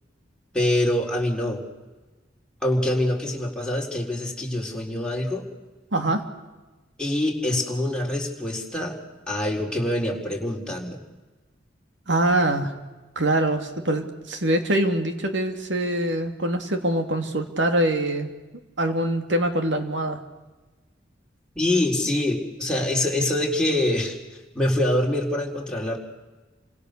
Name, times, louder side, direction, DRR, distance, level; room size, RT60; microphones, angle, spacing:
voice 1, 0.5-1.6 2.6-5.5 7.0-9.0 9.3-11.0 21.6-24.2 24.5-26.0, left 1 dB, 5° left, -2 dB, 4.1 m, -25 dB
voice 2, 5.9-6.2 12.1-12.7 13.2-18.3 18.8-20.2, right 1 dB, 85° right, 6 dB, 2.6 m, -24 dB
29.0 x 26.0 x 6.8 m, 1.2 s
head